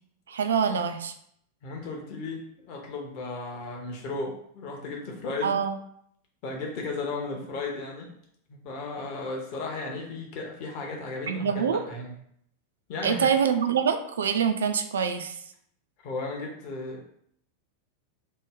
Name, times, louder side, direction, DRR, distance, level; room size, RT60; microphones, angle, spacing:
voice 1, 0.3-1.1 5.4-5.8 11.3-11.8 13.0-15.4, right 7 dB, 65° right, 8 dB, 0.3 m, -25 dB
voice 2, 1.6-5.6 6.4-8.1 8.5-12.1 12.9-13.2 16.0-17.0, left 3 dB, 45° left, 0 dB, 0.6 m, -35 dB
3.1 x 2.0 x 3.6 m, 0.69 s
figure-of-eight pair, 90°, 0 cm